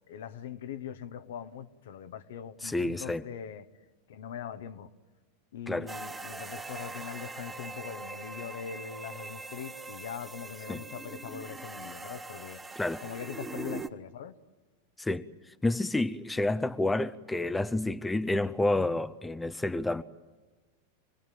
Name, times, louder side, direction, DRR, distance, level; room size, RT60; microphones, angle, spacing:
voice 1, 0.1-3.7 4.1-4.9 5.5-12.6 13.0-14.3, left 8 dB, 70° left, 1.0 m, -41 dB
voice 2, 2.6-3.2 5.7-5.9 10.7-10.8 12.8-13.0 15.0-15.3 15.6-20.0, left 2 dB, 10° left, 0.7 m, -29 dB
sound 1, 5.9-13.9, right 3 dB, 15° right, 1.1 m, -42 dB
26.0 x 18.5 x 9.2 m
hypercardioid pair, 100°, 0 cm